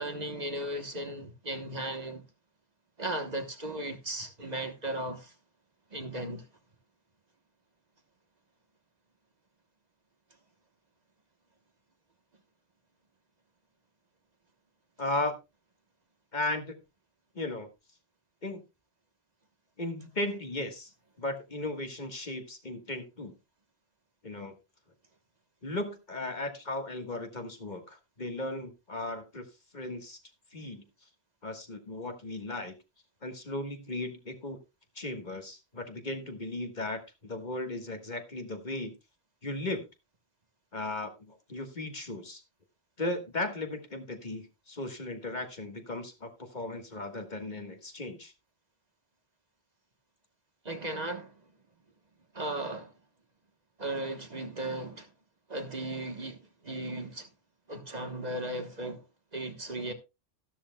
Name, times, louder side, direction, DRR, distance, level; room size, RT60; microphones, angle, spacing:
voice 1, 0.0-2.2 3.0-5.4 5.9-6.5 50.6-51.5 52.3-52.9 53.8-55.1 55.5-57.3 57.7-59.9, right 1 dB, 40° right, 1.3 m, -36 dB
voice 2, 15.0-15.4 16.3-16.8 17.4-17.7 18.4-18.6 19.8-20.9 21.2-23.3 24.2-24.5 25.6-29.5 29.7-30.2 30.5-30.8 31.4-32.7 33.2-34.6 35.0-38.9 39.4-39.9 40.7-42.4 43.0-48.3, left 2 dB, 45° left, 1.7 m, -36 dB
13.0 x 12.5 x 2.2 m
omnidirectional pair, 1.1 m